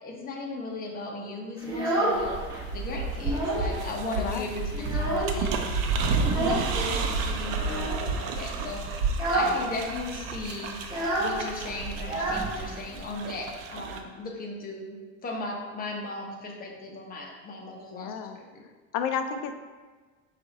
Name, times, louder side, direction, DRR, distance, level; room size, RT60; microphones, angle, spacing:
voice 1, 0.0-2.4 2.7-5.7 6.3-9.0 9.3-10.8 11.2-15.0 15.2-18.6, left 3 dB, 30° left, 0 dB, 0.8 m, -37 dB
Child speech kid speaking, 1.6-2.6 3.0-3.7 4.0-4.1 4.5-5.6 6.2-6.7 7.6-8.1 8.5-8.7 9.1-9.6 9.9-10.0 10.2-13.0, right 1 dB, 10° right, 1.3 m, -29 dB
sound 1, 2.1-14.0, right 4 dB, 90° right, 0.5 m, -31 dB
voice 2, 4.2-4.6 9.4-9.7 17.9-18.4 18.9-19.5, left 7 dB, 85° left, 7 dB, 0.5 m, -32 dB
4.6 x 2.5 x 3.9 m, 1.4 s
cardioid pair, 130°, 31 cm